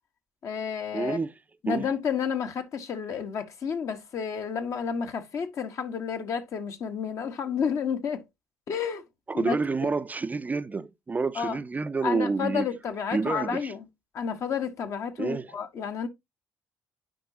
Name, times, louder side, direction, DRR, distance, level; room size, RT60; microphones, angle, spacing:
voice 1, 0.4-1.2 1.6-8.2 8.7-9.0 9.3-9.6 9.8-9.9 11.4-11.6 12.0-13.8 14.1-16.1, left 7 dB, 50° left, 1.2 m, -31 dB
voice 2, 0.9-1.3 1.7-1.9 9.3-12.7 13.1-13.7 15.2-15.6, right 4 dB, 25° right, 0.5 m, -28 dB
9.9 x 5.3 x 2.7 m
figure-of-eight pair, 50°, 7 cm